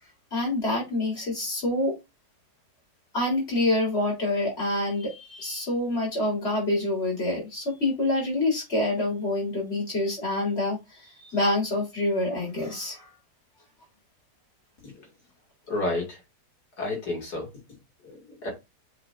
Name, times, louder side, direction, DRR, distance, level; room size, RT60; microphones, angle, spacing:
voice 1, 0.3-1.9 3.1-13.1, left 1 dB, 40° left, 4.3 m, -27 dB
voice 2, 15.7-16.2 16.8-17.5 18.0-18.5, left 2 dB, 80° left, 3.0 m, -30 dB
7.6 x 4.9 x 2.7 m
omnidirectional pair, 1.7 m